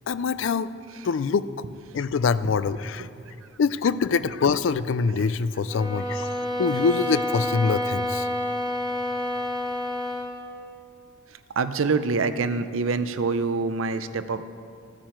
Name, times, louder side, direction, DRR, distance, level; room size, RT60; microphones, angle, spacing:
voice 1, 0.1-0.7 1.0-1.5 1.9-3.1 3.6-6.3 6.6-8.3, left 5 dB, 70° left, 15 dB, 0.4 m, -24 dB
sound 1, 5.7-10.4, left 1 dB, 20° right, 0.9 m, -28 dB
voice 2, 11.6-14.4, right 4 dB, 85° right, 12 dB, 0.6 m, -25 dB
14.5 x 9.0 x 4.5 m, 2.3 s
head